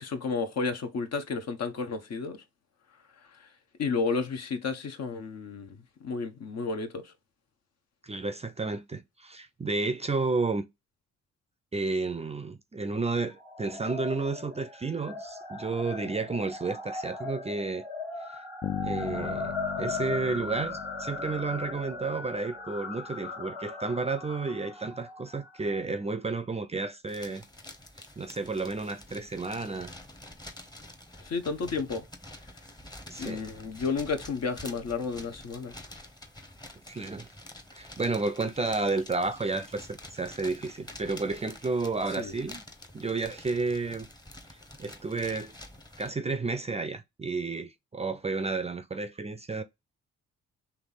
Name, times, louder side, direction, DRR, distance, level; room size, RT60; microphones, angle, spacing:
voice 1, 0.0-2.4 3.3-3.5 3.8-7.1 31.2-32.0 33.2-35.7 42.2-42.3, left 4 dB, 50° left, 0.9 m, -32 dB
voice 2, 8.0-10.6 11.7-17.8 18.3-18.4 18.8-27.5 28.2-29.9 33.1-33.4 36.9-37.3 37.7-42.6 42.9-44.1 44.5-45.5 46.0-49.6, right 3 dB, 20° right, 0.5 m, -31 dB
sound 1, 13.4-25.8, left 3 dB, 85° left, 1.8 m, -38 dB
Bass guitar, 18.6-22.4, left 11 dB, 35° left, 0.4 m, -38 dB
sound 2, 27.1-46.1, left 1 dB, 15° left, 0.9 m, -48 dB
3.4 x 2.9 x 4.0 m
hypercardioid pair, 45°, 32 cm